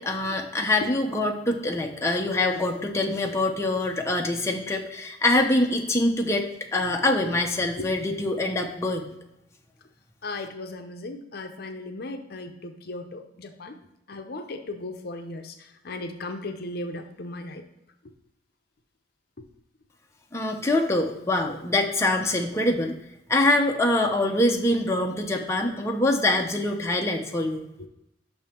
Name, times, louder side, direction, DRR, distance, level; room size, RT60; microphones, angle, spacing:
voice 1, 0.0-9.1 20.3-23.0 23.3-27.6, left 2 dB, 15° left, 1 dB, 0.7 m, -24 dB
voice 2, 10.2-13.7 14.1-15.5 15.8-17.6 27.8-27.9, left 2 dB, 55° left, 6 dB, 0.7 m, -36 dB
6.0 x 5.5 x 4.4 m, 0.87 s
head